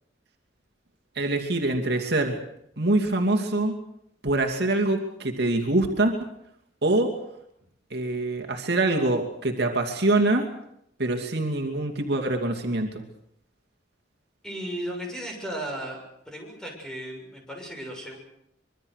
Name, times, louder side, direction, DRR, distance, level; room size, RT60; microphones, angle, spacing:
voice 1, 1.2-2.4 2.8-3.7 4.2-6.1 6.8-7.1 7.9-10.5 11.0-12.9, right 2 dB, 65° right, 3 dB, 2.7 m, -24 dB
voice 2, 14.4-16.0 16.3-18.2, right 1 dB, 5° left, 1 dB, 7.1 m, -35 dB
25.5 x 23.0 x 6.6 m, 0.74 s
head